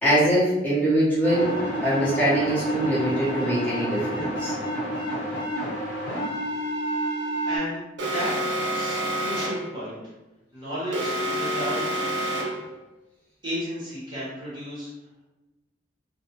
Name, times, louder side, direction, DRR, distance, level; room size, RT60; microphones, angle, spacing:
voice 1, 0.0-1.6 1.8-4.5, right 1 dB, 10° left, -11 dB, 1.0 m, -23 dB
sound 1, 1.2-7.6, equal, 70° left, 1.1 m, -29 dB
voice 2, 7.4-7.8 8.1-8.3 8.7-10.0 10.5-12.0 13.4-14.9, equal, 25° right, -10 dB, 0.9 m, -33 dB
Alarm, 8.0-9.7 10.9-12.7, right 1 dB, 75° right, 0.6 m, -28 dB
2.4 x 2.1 x 2.8 m, 1.0 s
head